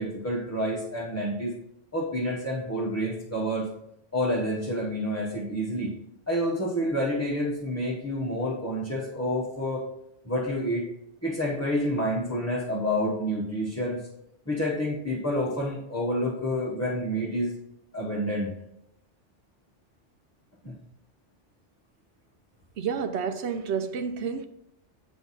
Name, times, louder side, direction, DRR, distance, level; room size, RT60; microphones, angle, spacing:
voice 1, 0.0-1.5 1.9-3.7 4.1-5.9 6.3-9.9 10.2-10.9 11.2-14.0 14.5-17.5 17.9-18.5 20.6-20.8, equal, 15° left, 0.9 m, -28 dB
voice 2, 22.8-24.4, right 6 dB, 70° right, 0.9 m, -30 dB
7.8 x 5.1 x 4.1 m
omnidirectional pair, 1.2 m